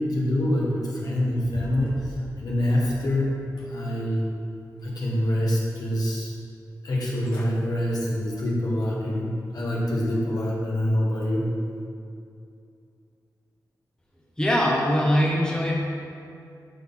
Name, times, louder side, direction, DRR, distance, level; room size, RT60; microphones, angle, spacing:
voice 1, 0.0-3.3 3.7-4.3 4.8-6.3 6.8-11.5, left 1 dB, 65° left, -5 dB, 1.8 m, -25 dB
sound 1, 1.2-3.1 3.6-4.4 4.8-5.6 6.1-6.2 6.9-7.0 7.2-7.6 8.0-8.3 8.8-8.9, left 1 dB, 85° left, 1.5 m, -43 dB
voice 2, 14.4-15.7, equal, 10° left, -3 dB, 1.0 m, -22 dB
11.5 x 4.4 x 3.8 m, 2.5 s
wide cardioid pair, 110°, 7 cm